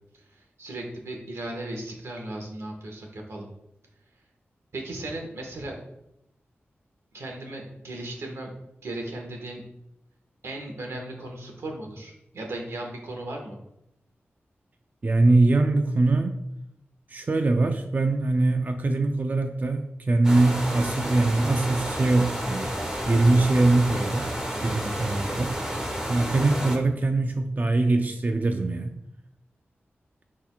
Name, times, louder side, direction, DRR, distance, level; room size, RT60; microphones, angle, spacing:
voice 1, 0.3-3.5 4.7-5.8 7.1-8.5 8.8-9.6 10.4-13.6, right 1 dB, 85° right, 1 dB, 1.4 m, -36 dB
voice 2, 15.0-16.4 17.1-22.7 23.1-24.3 24.6-25.5 26.1-28.9, right 2 dB, 40° right, 5 dB, 0.5 m, -22 dB
sound 1, 20.2-26.8, equal, 15° right, 1.3 m, -31 dB
10.5 x 3.8 x 2.4 m, 0.83 s
wide cardioid pair, 80°, 4 cm